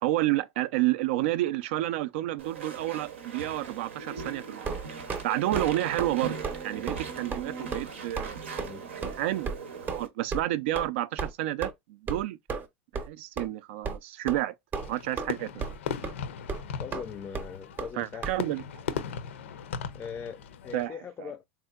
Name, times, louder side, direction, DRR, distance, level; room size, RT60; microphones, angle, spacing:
voice 1, 0.0-4.8 5.2-6.4 6.6-9.5 9.9-12.4 13.1-14.5 14.9-15.7 18.0-18.6 18.9-19.0 20.7-20.9, right 15 dB, 70° right, 0.4 m, -30 dB
Walk footsteps / Chatter / Squeak, 2.4-10.1, right 5 dB, 90° right, 0.8 m, -39 dB
sound 1, 4.6-5.2 5.5-5.7 6.0-6.2 6.4-6.6 6.9-7.0 7.3-7.4 7.7-7.9 8.2-8.3 8.6-8.7 9.0-9.2 9.4-9.6 9.9-10.0 10.3-10.4 10.7-10.9 11.2-11.3 11.6-11.7 12.1-12.2 12.5-12.7 12.9-13.1 13.4-13.5 13.8-14.0 14.3-14.4 14.7-15.3 15.6-16.1 16.5-16.6 16.9-17.0 17.3-17.5 17.8-17.9 18.2-18.3, right 5 dB, 30° right, 0.6 m, -33 dB
Fireworks, 14.7-20.9, left 7 dB, 85° left, 0.5 m, -38 dB
voice 2, 16.8-18.4 19.9-21.5, left 7 dB, 25° left, 0.4 m, -41 dB
3.5 x 2.6 x 2.3 m
hypercardioid pair, 110°, 7 cm